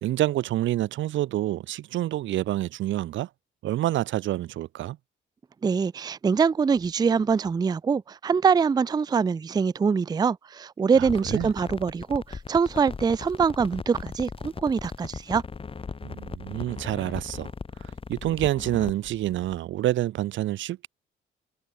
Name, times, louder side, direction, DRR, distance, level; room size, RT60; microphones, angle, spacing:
voice 1, 0.0-3.3 3.6-5.0 11.0-11.5 16.0-17.5 17.8-20.9, right 14 dB, 70° right, 0.7 m, -28 dB
voice 2, 5.6-15.4, right 6 dB, 20° right, 0.4 m, -24 dB
sound 1, 11.0-19.6, left 5 dB, 25° left, 1.0 m, -38 dB
cardioid pair, 90°, 20 cm